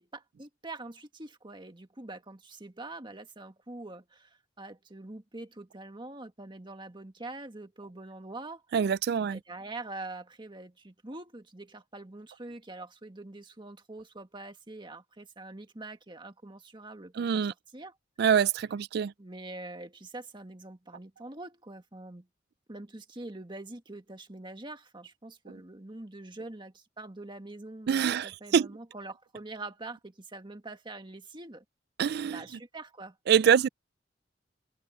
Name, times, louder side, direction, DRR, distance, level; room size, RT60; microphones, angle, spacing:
voice 1, 0.0-8.6 9.2-17.5 17.7-17.9 19.2-22.3 22.7-31.6 32.2-33.2, right 2 dB, 25° right, 1.7 m, -44 dB
voice 2, 8.7-9.4 17.2-17.5 18.2-19.1 27.9-28.7 32.0-32.4 33.3-33.7, right 7 dB, 60° right, 0.3 m, -25 dB
open air
head